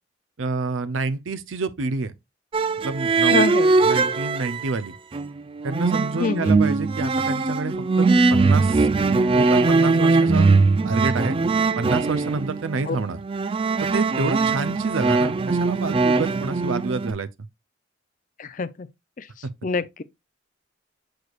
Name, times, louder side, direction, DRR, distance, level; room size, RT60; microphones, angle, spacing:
voice 1, 0.4-2.1 2.8-3.5 3.8-4.9 5.6-10.5 10.8-11.4 11.8-13.2 13.8-17.3 19.4-19.5, right 3 dB, 85° right, 0.6 m, -28 dB
sound 1, 2.5-4.8 5.1-17.1, right 3 dB, 25° right, 0.4 m, -21 dB
voice 2, 3.3-3.7 6.2-6.6 12.9-13.0 18.4-18.9 19.2-19.3 19.6-20.0, left 4 dB, 40° left, 0.5 m, -25 dB
6.7 x 6.2 x 2.4 m
head